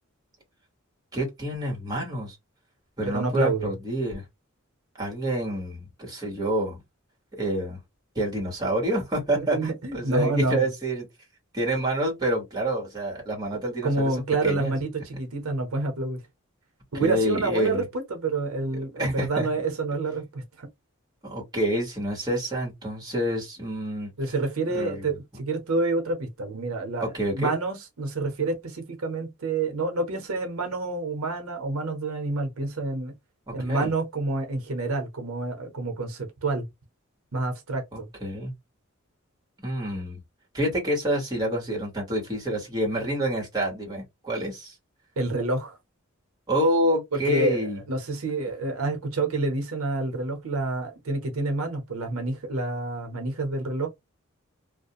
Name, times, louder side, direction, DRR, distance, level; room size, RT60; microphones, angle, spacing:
voice 1, 1.1-2.4 3.0-4.2 5.0-6.8 7.3-7.8 8.1-11.0 11.5-14.7 16.9-17.8 19.0-19.5 21.2-24.1 24.7-25.1 27.0-27.5 33.5-33.9 37.9-38.5 39.6-40.2 40.5-44.8 46.5-47.8, right 1 dB, 20° right, 1.2 m, -28 dB
voice 2, 3.0-3.7 9.3-10.7 13.5-16.2 16.9-20.7 24.2-27.1 27.3-33.1 33.5-36.6 37.3-38.1 45.2-45.8 47.1-47.6 47.9-53.9, right 3 dB, 85° right, 0.8 m, -28 dB
2.4 x 2.2 x 2.7 m
head